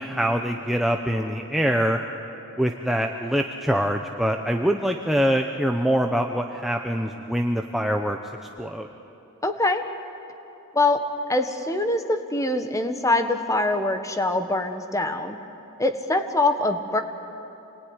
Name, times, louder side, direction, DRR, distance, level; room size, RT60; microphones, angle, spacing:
voice 1, 0.0-2.0 2.6-8.2 8.6-8.9, equal, ahead, 3 dB, 0.8 m, -24 dB
voice 2, 9.4-9.8 10.7-15.4 15.8-17.0, left 2 dB, 15° left, 7 dB, 1.3 m, -24 dB
27.5 x 19.5 x 9.8 m, 3.0 s
head